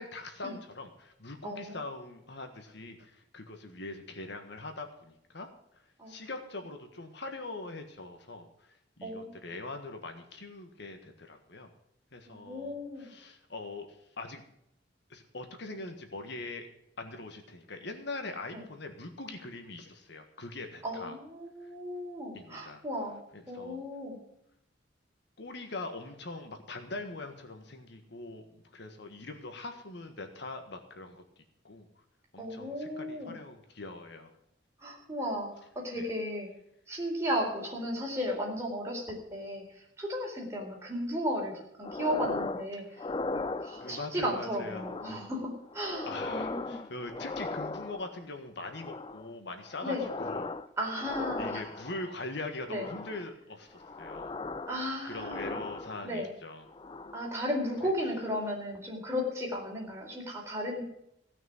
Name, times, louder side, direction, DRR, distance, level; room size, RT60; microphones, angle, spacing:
voice 1, 0.0-5.5 6.1-11.7 12.1-14.4 15.1-16.6 17.0-21.2 21.6-21.7 22.3-22.8 23.3-23.8 25.4-31.9 32.3-34.3 36.0-36.1 42.7-43.0 43.8-45.2 46.1-50.5 51.4-54.3 55.0-56.7 57.8-57.9, left 2 dB, 60° left, 6 dB, 1.6 m, -42 dB
voice 2, 1.4-1.8 6.0-6.2 9.0-9.5 12.3-13.1 18.5-18.6 20.8-23.2 23.5-24.2 32.4-33.3 34.8-35.5 35.8-36.5 36.9-39.6 40.0-41.5 41.8-42.8 43.3-46.8 49.8-50.1 50.8-51.6 52.7-52.9 54.7-55.6 56.0-56.3 57.1-60.8, equal, 15° right, -2 dB, 4.2 m, -35 dB
sound 1, 41.8-42.7 43.0-44.1 44.6-45.3 45.7-48.2 48.6-49.3 49.7-50.7 51.0-52.1 52.7-53.3 53.7-56.2 56.7-57.3 57.7-57.9, left 3 dB, 25° left, 0.5 m, -38 dB
16.5 x 6.2 x 9.4 m, 0.76 s
head